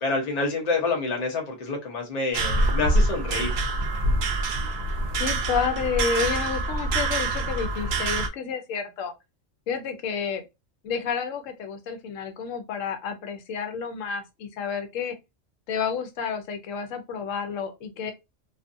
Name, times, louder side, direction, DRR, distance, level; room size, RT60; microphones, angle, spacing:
voice 1, 0.0-3.5, left 3 dB, 40° left, 0.7 m, -27 dB
sound 1, 2.3-8.3, right 2 dB, 65° right, 0.7 m, -25 dB
voice 2, 5.2-9.1 9.7-10.4 10.8-15.1 15.7-18.1, left 6 dB, 80° left, 0.9 m, -30 dB
2.5 x 2.4 x 2.5 m
omnidirectional pair, 1.3 m